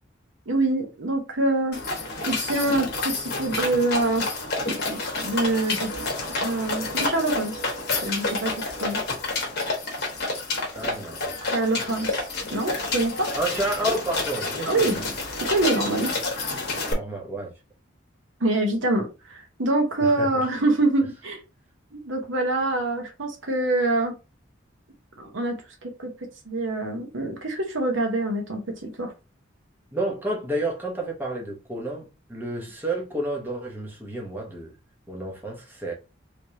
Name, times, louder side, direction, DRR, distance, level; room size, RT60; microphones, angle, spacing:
voice 1, 0.5-1.8 2.2-4.3 4.7-4.8 5.2-5.9 6.4-7.6 8.0-9.0 11.5-13.3 14.7-15.0 15.5-16.1 18.4-21.4 21.9-24.1 25.2-26.1 26.4-29.1, right 2 dB, 80° right, 1.1 m, -25 dB
sound 1, 1.7-16.9, left 3 dB, 55° left, 1.1 m, -29 dB
voice 2, 10.7-11.3 11.8-11.9 13.3-14.8 16.9-17.5 20.0-20.4 29.9-34.7 35.1-35.9, right 1 dB, 10° right, 1.0 m, -30 dB
3.2 x 3.1 x 2.8 m
head